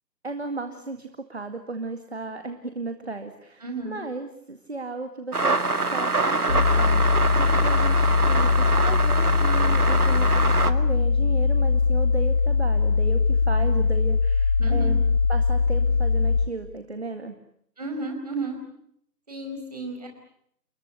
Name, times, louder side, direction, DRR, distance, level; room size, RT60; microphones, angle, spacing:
voice 1, 0.2-15.0 15.3-17.4, right 3 dB, 40° right, 7 dB, 2.2 m, -35 dB
voice 2, 3.6-4.0 14.6-15.0 17.8-18.6 19.3-20.1, right 2 dB, 25° right, 3 dB, 5.0 m, -33 dB
sound 1, 5.3-10.7, right 3 dB, 60° right, 2.3 m, -25 dB
sound 2, 6.5-16.5, left 4 dB, 30° left, 3.7 m, -21 dB
29.5 x 21.0 x 8.5 m, 0.70 s
figure-of-eight pair, 175°, 49 cm